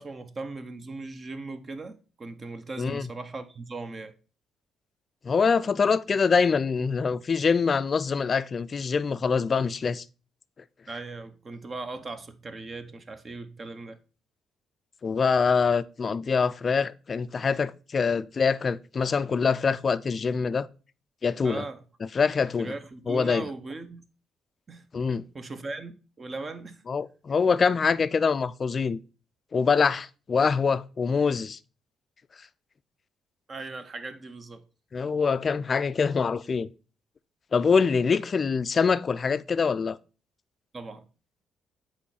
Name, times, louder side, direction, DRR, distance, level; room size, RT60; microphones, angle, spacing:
voice 1, 0.0-4.1 10.9-14.0 21.4-21.8 22.6-24.0 24.7-24.9 25.3-25.9 26.2-26.8 33.5-34.6 40.7-41.1, right 3 dB, 35° right, 0.7 m, -38 dB
voice 2, 5.2-10.0 15.0-20.7 21.2-21.6 22.1-22.7 23.1-23.5 24.9-25.2 26.9-29.0 29.5-31.6 34.9-36.7 37.5-40.0, left 5 dB, 40° left, 0.4 m, -24 dB
8.2 x 3.1 x 4.1 m
cardioid pair, 90°, 0 cm